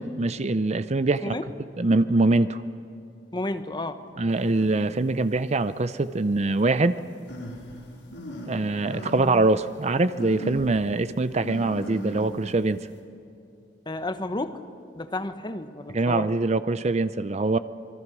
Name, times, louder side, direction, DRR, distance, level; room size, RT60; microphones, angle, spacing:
voice 1, 0.0-1.4 1.8-2.6 4.2-7.0 8.5-12.8 15.9-17.6, right 2 dB, 35° right, 13 dB, 0.6 m, -23 dB
voice 2, 1.2-1.5 3.3-4.0 13.9-14.7 14.9-16.3, left 2 dB, 25° left, 9 dB, 1.1 m, -32 dB
sound 1, 4.5-4.7 5.4-5.5 7.3-8.6 8.8-9.3 9.6-9.7 10.2-10.8 11.4-12.5, equal, 80° left, 5.8 m, -36 dB
27.5 x 22.5 x 6.2 m, 2.7 s
head